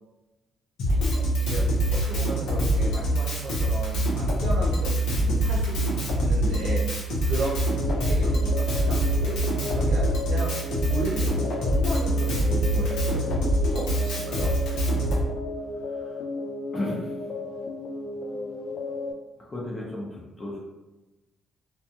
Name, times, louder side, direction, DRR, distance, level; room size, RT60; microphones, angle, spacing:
Drum kit, 0.8-15.2, right 1 dB, 85° left, 0.7 m, -24 dB
voice 1, 0.9-5.9 6.2-7.5 8.0-9.4 9.7-10.6 10.8-13.3 13.7-14.5, right 1 dB, 75° right, -3 dB, 0.6 m, -35 dB
sound 1, 7.4-19.1, left 2 dB, 60° left, 0.3 m, -34 dB
voice 2, 15.7-16.2 16.7-17.2 19.4-20.6, left 1 dB, 30° left, -4 dB, 0.6 m, -34 dB
2.4 x 2.2 x 2.7 m, 1.1 s
cardioid pair, 90°, 0 cm